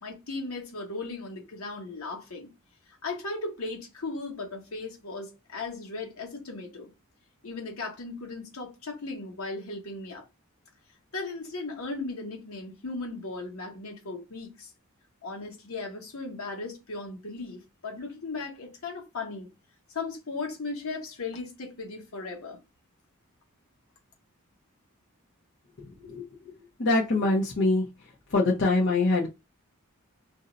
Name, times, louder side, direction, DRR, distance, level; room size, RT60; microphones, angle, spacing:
voice 1, 0.0-2.5 3.0-6.9 7.4-10.2 11.1-14.7 15.2-19.5 19.9-22.6, left 3 dB, 85° left, 1.1 m, -37 dB
voice 2, 25.8-26.2 26.8-27.8 28.3-29.3, left 2 dB, 55° left, 0.7 m, -24 dB
2.6 x 2.2 x 3.8 m
head